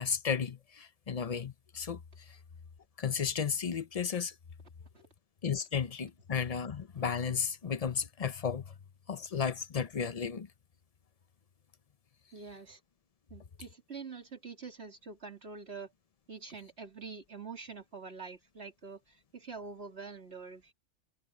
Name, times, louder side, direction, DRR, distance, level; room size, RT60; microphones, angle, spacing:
voice 1, 0.0-2.4 3.0-4.3 5.4-8.7 9.1-10.5, left 6 dB, 35° left, 0.8 m, -34 dB
voice 2, 12.3-12.8 13.3-15.9 16.3-20.7, right 4 dB, 60° right, 3.2 m, -45 dB
omnidirectional pair, 1.2 m